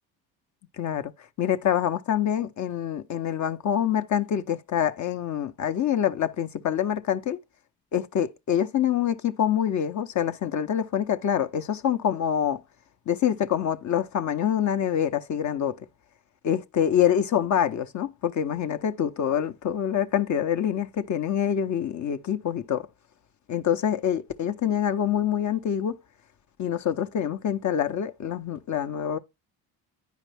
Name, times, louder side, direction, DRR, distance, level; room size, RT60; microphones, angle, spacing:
voice 1, 0.8-1.1 1.4-7.4 7.9-12.6 13.1-15.8 16.4-22.9 23.5-26.0 26.6-29.2, left 9 dB, 50° left, 0.8 m, -26 dB
9.2 x 5.0 x 3.4 m
supercardioid pair, 80°, 38 cm